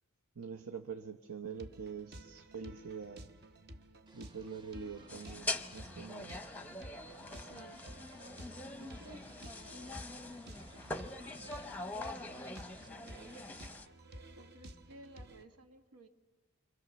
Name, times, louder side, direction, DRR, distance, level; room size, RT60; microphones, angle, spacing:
voice 1, 0.4-3.3 4.1-6.5, right 6 dB, 70° right, 5 dB, 1.0 m, -45 dB
sound 1, 1.6-15.4, right 1 dB, 50° right, 1.1 m, -53 dB
sound 2, 4.1-12.9, right 1 dB, 20° right, 1.0 m, -62 dB
sound 3, 5.1-13.9, left 2 dB, 5° left, 0.8 m, -43 dB
voice 2, 7.4-7.8 8.8-10.0 14.3-16.1, right 1 dB, 90° right, 7 dB, 1.7 m, -56 dB
29.0 x 25.0 x 6.9 m, 1.2 s
head